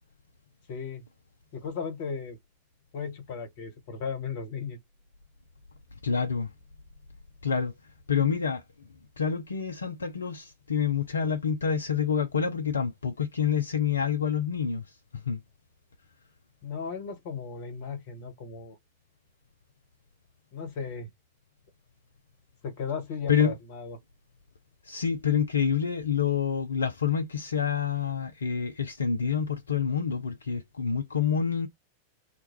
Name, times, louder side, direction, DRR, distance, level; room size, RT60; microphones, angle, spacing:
voice 1, 0.7-1.1 1.5-2.4 2.9-4.8 16.6-18.8 20.5-21.1 22.6-24.0, left 6 dB, 50° left, 1.2 m, -36 dB
voice 2, 6.0-6.5 7.4-7.7 8.1-8.6 9.2-15.4 23.3-23.6 24.8-31.7, left 7 dB, 75° left, 0.4 m, -27 dB
2.1 x 2.1 x 3.0 m
figure-of-eight pair, 90°, 0 cm